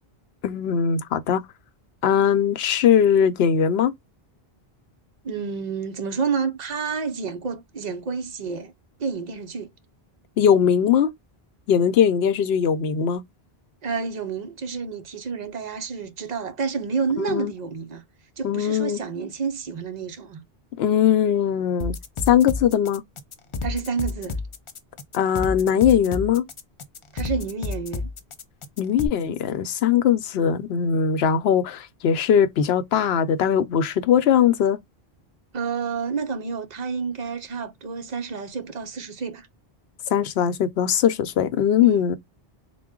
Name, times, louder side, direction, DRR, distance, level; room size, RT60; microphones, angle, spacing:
voice 1, 0.4-1.4 2.0-3.9 10.4-11.1 11.7-13.2 17.2-17.5 18.4-19.0 20.8-21.9 22.3-23.0 25.1-26.4 28.8-34.8 40.1-42.2, left 8 dB, 80° left, 0.8 m, -20 dB
voice 2, 5.2-8.7 9.0-9.7 13.8-18.0 18.4-20.4 23.6-24.4 27.1-28.1 35.5-39.5 41.8-42.0, right 5 dB, 50° right, 0.7 m, -29 dB
sound 1, 21.8-29.1, left 3 dB, 45° left, 0.4 m, -31 dB
3.7 x 2.1 x 3.6 m
omnidirectional pair, 1.0 m